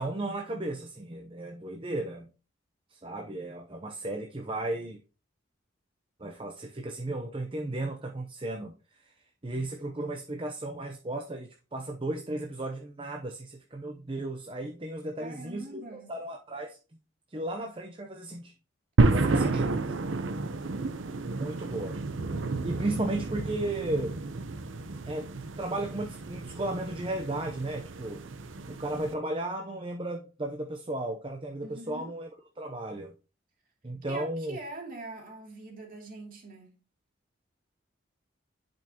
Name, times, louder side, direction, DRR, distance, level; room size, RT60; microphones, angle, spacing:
voice 1, 0.0-2.3 2.9-5.0 6.2-9.1 9.4-15.8 16.1-16.8 17.3-18.5 19.1-19.7 21.3-22.0 22.6-24.2 25.1-28.2 28.7-32.3 32.6-33.1 33.8-34.6, right 2 dB, 25° right, 0.7 m, -35 dB
voice 2, 15.2-16.1 19.3-19.8 31.6-32.1 34.1-36.7, right 2 dB, 45° right, 2.6 m, -43 dB
sound 1, 19.0-29.1, right 3 dB, 80° right, 0.7 m, -30 dB
10.5 x 5.3 x 2.9 m
head